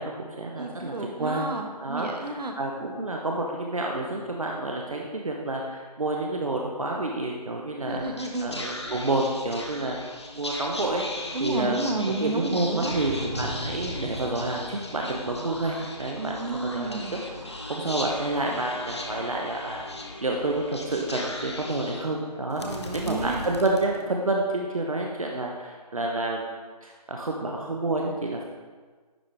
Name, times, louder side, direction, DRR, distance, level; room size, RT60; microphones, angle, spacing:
voice 1, 0.0-0.9 1.2-1.4 1.8-8.0 8.4-10.0 10.3-11.0 11.4-11.8 12.2-16.3 16.6-17.0 17.5-19.8 20.2-26.5 26.8-28.4, right 2 dB, 55° right, 0 dB, 0.7 m, -29 dB
voice 2, 0.6-2.5 7.8-8.5 11.3-13.0 16.2-17.2 22.6-23.5, right 2 dB, 80° right, 4 dB, 1.0 m, -31 dB
Whispering, 7.8-24.4, left 2 dB, 40° left, 0.6 m, -38 dB
sound 1, 12.7-14.9, equal, 25° left, 1.1 m, -36 dB
9.9 x 3.7 x 3.3 m, 1.4 s
figure-of-eight pair, 180°, 21 cm